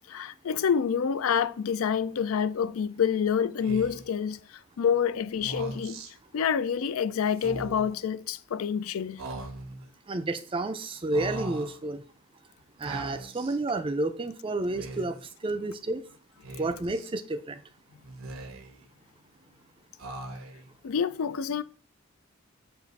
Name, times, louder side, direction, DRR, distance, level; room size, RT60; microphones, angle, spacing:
voice 1, 0.1-6.0 6.3-9.2 20.8-21.6, left 7 dB, 80° left, 0.4 m, -27 dB
Speech, 3.6-4.1 5.3-6.1 7.3-8.0 9.2-9.9 11.1-11.8 12.8-13.6 14.6-15.3 16.4-17.1 18.0-18.8 20.0-20.7, right 2 dB, 80° right, 1.1 m, -40 dB
voice 2, 10.1-12.0 12.8-15.2 15.4-16.0 16.6-17.6, right 2 dB, 25° right, 0.4 m, -30 dB
7.1 x 2.5 x 5.3 m
head